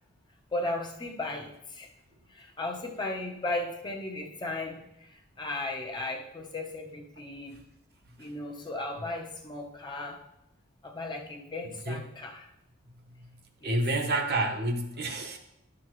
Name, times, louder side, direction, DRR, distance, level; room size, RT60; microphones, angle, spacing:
voice 1, 0.5-1.9 2.3-7.7 8.2-10.2 10.8-12.5 13.6-13.8, left 2 dB, 20° left, 1 dB, 0.8 m, -36 dB
voice 2, 13.6-15.4, right 2 dB, 50° right, 4 dB, 0.9 m, -29 dB
10.5 x 6.3 x 3.1 m, 0.82 s
head